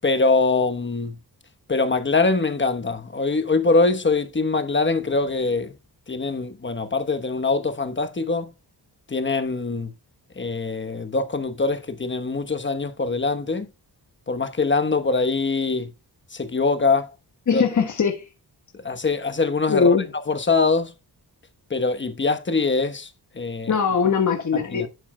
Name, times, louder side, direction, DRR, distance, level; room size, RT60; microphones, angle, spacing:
voice 1, 0.0-1.2 1.7-5.7 6.1-8.5 9.1-9.9 10.4-13.7 14.3-15.9 16.3-17.1 17.5-17.6 18.8-20.0 20.3-20.9 21.7-23.1 23.3-23.8 24.5-24.9, left 3 dB, 30° left, 1.1 m, -23 dB
voice 2, 17.5-18.2 19.7-20.0 23.7-24.9, left 6 dB, 45° left, 1.4 m, -20 dB
11.0 x 8.1 x 2.2 m
wide cardioid pair, 170°, 41 cm